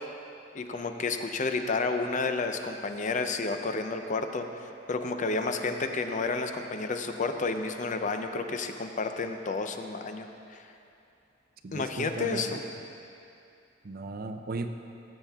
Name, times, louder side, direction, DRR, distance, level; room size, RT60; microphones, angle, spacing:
voice 1, 0.5-10.6 11.7-12.6, left 3 dB, 40° left, 7 dB, 0.5 m, -31 dB
voice 2, 11.6-12.6 13.8-14.7, right 3 dB, 50° right, 7 dB, 0.5 m, -36 dB
15.5 x 7.2 x 3.5 m, 2.7 s
head